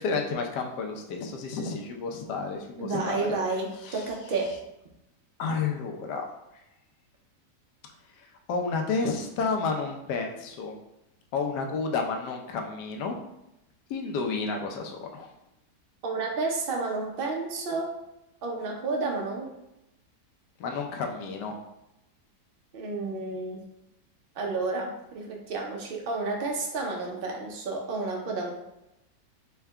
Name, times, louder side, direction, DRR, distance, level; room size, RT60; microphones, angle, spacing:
voice 1, 0.0-3.4 3.8-4.0 5.4-6.3 8.5-10.7 11.3-13.2 13.9-15.3 20.6-21.6, left 4 dB, 80° left, 3 dB, 1.2 m, -31 dB
voice 2, 2.8-4.6 16.0-17.9 18.4-19.5 22.7-23.7 24.4-28.5, right 3 dB, 85° right, 0 dB, 0.5 m, -31 dB
4.6 x 2.2 x 3.4 m, 0.89 s
omnidirectional pair, 1.8 m